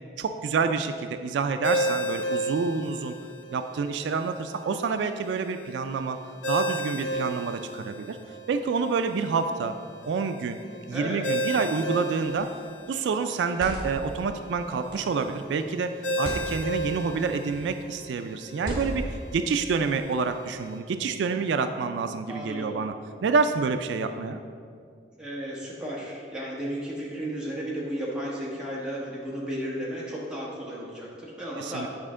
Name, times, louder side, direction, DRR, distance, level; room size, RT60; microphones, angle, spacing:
voice 1, 0.2-3.1 3.5-6.2 6.5-8.2 8.5-9.7 10.1-10.6 10.9-12.5 12.9-15.9 16.2-22.9 23.2-24.4 31.6-31.9, right 5 dB, 75° right, 8 dB, 0.3 m, -28 dB
Ringtone, 1.6-20.8, right 1 dB, 70° left, 1.0 m, -34 dB
voice 2, 10.9-11.2 22.3-22.7 25.2-31.9, equal, 5° right, -6 dB, 1.3 m, -34 dB
sound 1, 12.2-12.5 13.3-14.1 14.9-15.2 16.1-16.5 17.4-17.8 18.6-19.2, equal, 50° right, 1.9 m, -36 dB
8.8 x 5.0 x 3.6 m, 2.3 s
head